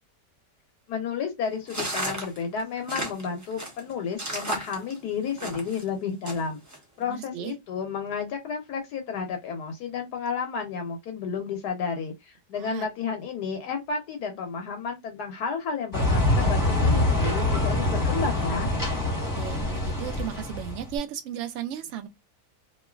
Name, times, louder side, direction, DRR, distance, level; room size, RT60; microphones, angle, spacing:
voice 1, 0.9-6.6 7.0-18.7, left 6 dB, 75° left, 1.2 m, -32 dB
sound 1, 1.7-5.8 6.3-6.8, right 1 dB, 25° right, 0.4 m, -33 dB
voice 2, 7.0-7.5 12.5-12.9 19.0-22.1, right 10 dB, 75° right, 0.6 m, -35 dB
sound 2, 15.9-20.9, left 1 dB, 15° left, 1.0 m, -25 dB
3.1 x 2.4 x 2.3 m
omnidirectional pair, 1.8 m